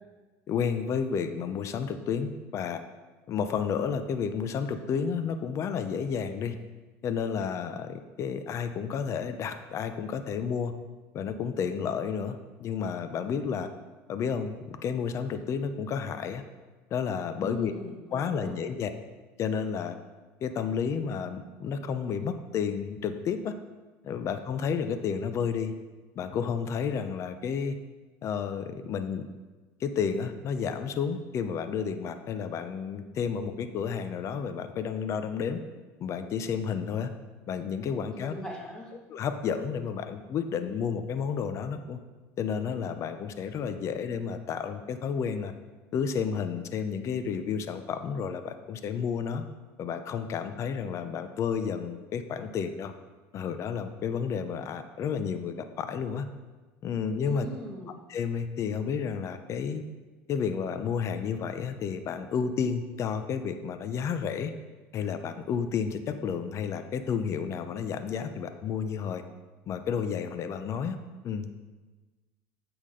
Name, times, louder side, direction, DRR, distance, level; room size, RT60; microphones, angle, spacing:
voice 1, 0.5-2.8 3.3-6.6 7.0-10.7 11.1-13.7 14.1-16.4 16.9-17.7 18.1-18.9 19.4-19.9 20.4-23.5 24.0-25.7 26.2-27.8 28.2-29.3 29.8-35.6 36.0-37.1 37.5-38.3 39.1-42.0 42.4-45.5 45.9-49.4 49.8-52.9 53.3-56.3 56.8-57.5 58.1-59.8 60.3-64.5 64.9-69.2 69.7-71.0 71.2-71.5, left 6 dB, 45° left, 9 dB, 0.6 m, -31 dB
voice 2, 17.4-18.5 38.1-38.9 57.2-57.9, left 1 dB, 10° left, -2 dB, 1.8 m, -40 dB
8.3 x 6.0 x 3.8 m, 1.3 s
supercardioid pair, 115°, 7 cm